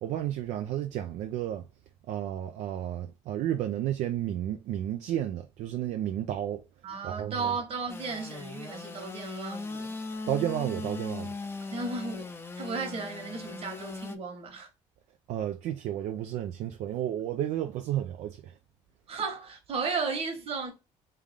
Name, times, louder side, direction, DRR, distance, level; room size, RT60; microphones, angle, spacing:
voice 1, 0.0-1.7 2.1-6.6 7.0-7.6 10.3-11.3 15.3-18.6, right 11 dB, 70° right, 0.4 m, -32 dB
voice 2, 6.8-9.9 11.7-12.3 12.6-14.7 19.1-20.7, right 4 dB, 50° right, 1.4 m, -34 dB
Engine / Sawing, 7.9-14.2, left 3 dB, 20° left, 0.5 m, -39 dB
3.4 x 2.4 x 3.5 m
cardioid pair, 90°, 13 cm